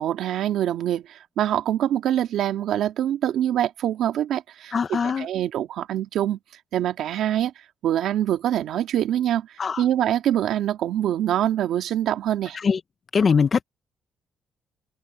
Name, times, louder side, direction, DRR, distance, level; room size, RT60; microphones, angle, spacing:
voice 1, 0.0-6.4 6.7-7.5 7.8-12.6, right 11 dB, 80° right, 2.1 m, -24 dB
voice 2, 4.7-5.3 9.6-9.8 12.5-12.8 13.1-13.6, left 6 dB, 45° left, 0.8 m, -21 dB
open air
cardioid pair, 90°, 0 cm